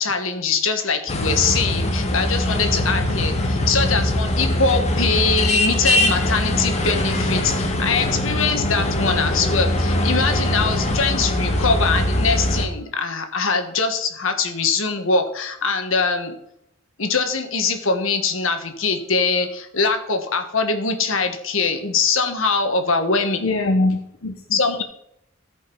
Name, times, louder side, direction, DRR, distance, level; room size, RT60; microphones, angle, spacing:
voice 1, 0.0-16.3 17.0-23.4 24.5-24.8, left 4 dB, 75° left, 6 dB, 1.4 m, -22 dB
sound 1, 1.1-12.7, left 1 dB, 35° left, 1.3 m, -22 dB
voice 2, 23.4-24.8, left 2 dB, 90° left, 4 dB, 0.8 m, -23 dB
14.0 x 5.3 x 5.4 m, 0.74 s
head